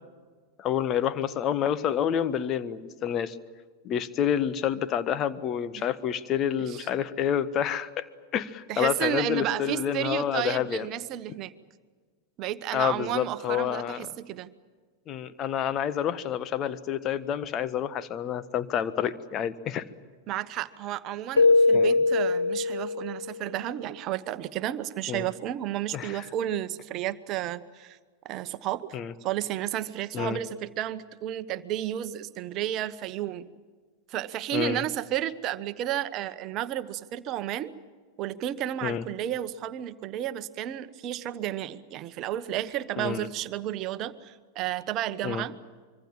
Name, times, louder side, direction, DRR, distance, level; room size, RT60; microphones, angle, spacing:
voice 1, 0.6-3.4 3.8-8.0 8.3-10.9 12.7-14.1 15.1-19.8 21.7-22.0 25.1-25.3 25.9-26.2 28.9-29.1 30.1-30.4 34.5-34.8 38.8-39.0 43.0-43.3 45.2-45.5, left 9 dB, 30° left, 13 dB, 1.3 m, -28 dB
voice 2, 8.7-11.5 12.4-14.5 20.3-28.0 28.2-28.9 29.2-33.5 34.1-37.7 38.2-45.5, right 12 dB, 35° right, 14 dB, 1.1 m, -32 dB
Keyboard (musical), 21.4-23.4, left 3 dB, 75° left, 0.7 m, -22 dB
25.5 x 24.5 x 7.5 m, 1.5 s
figure-of-eight pair, 90°, 0 cm